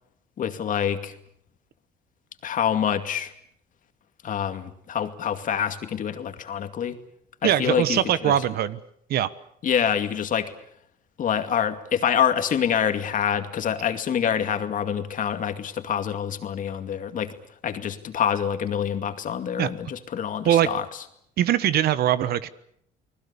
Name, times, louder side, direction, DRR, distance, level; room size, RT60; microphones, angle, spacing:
voice 1, 0.4-1.1 2.4-3.3 4.2-7.0 7.4-8.3 9.6-10.5 11.2-17.3 17.6-20.8, left 8 dB, 50° left, 8 dB, 2.4 m, -26 dB
voice 2, 7.4-8.8 9.1-9.3 19.6-19.7 20.4-20.7 21.4-22.5, right 11 dB, 65° right, 15 dB, 1.3 m, -21 dB
29.5 x 20.0 x 7.1 m, 0.70 s
cardioid pair, 110°, 17 cm